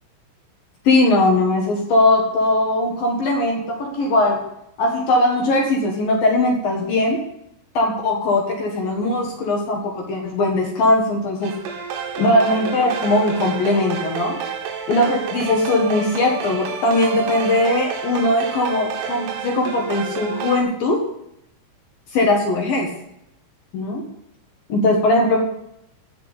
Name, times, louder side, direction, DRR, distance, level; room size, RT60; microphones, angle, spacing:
voice 1, 0.8-4.4 4.8-7.2 7.7-11.5 12.2-14.4 14.9-21.0 22.1-22.9 23.7-24.0 24.7-25.4, left 2 dB, 60° left, 1 dB, 2.8 m, -19 dB
sound 1, 11.4-20.6, right 6 dB, 75° right, 4.1 m, -30 dB
17.0 x 6.2 x 8.6 m, 0.78 s
omnidirectional pair, 5.9 m